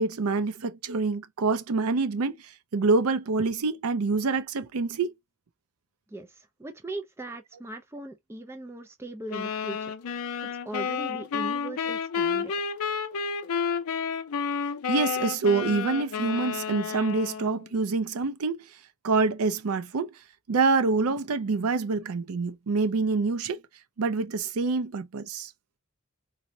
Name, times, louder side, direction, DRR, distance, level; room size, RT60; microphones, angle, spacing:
voice 1, 0.0-2.4 2.7-5.1 14.9-18.6 19.0-20.1 20.5-23.6 24.0-25.5, right 4 dB, 75° right, 0.5 m, -26 dB
voice 2, 6.1-9.9 10.4-12.5, right 2 dB, 10° right, 0.3 m, -39 dB
sound 1, 9.3-17.7, left 6 dB, 75° left, 0.5 m, -31 dB
4.0 x 2.1 x 2.6 m
head